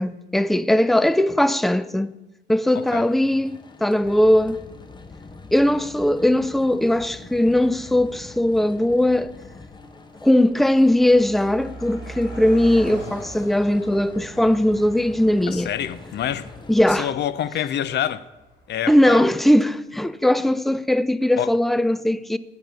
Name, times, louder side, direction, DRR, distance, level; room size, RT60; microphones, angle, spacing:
voice 1, 0.0-2.1 2.5-4.6 5.5-9.3 10.2-15.7 16.7-17.1 18.9-22.4, left 1 dB, ahead, 0.3 m, -19 dB
sound 1, 2.7-17.0, left 3 dB, 20° left, 0.8 m, -43 dB
Car passing by, 8.5-8.7 9.0-19.4, right 1 dB, 80° left, 3.4 m, -42 dB
voice 2, 15.5-16.5 17.0-18.2 18.7-19.2 21.4-21.5, left 10 dB, 60° left, 0.5 m, -26 dB
8.1 x 5.3 x 7.6 m
cardioid pair, 90°, 20 cm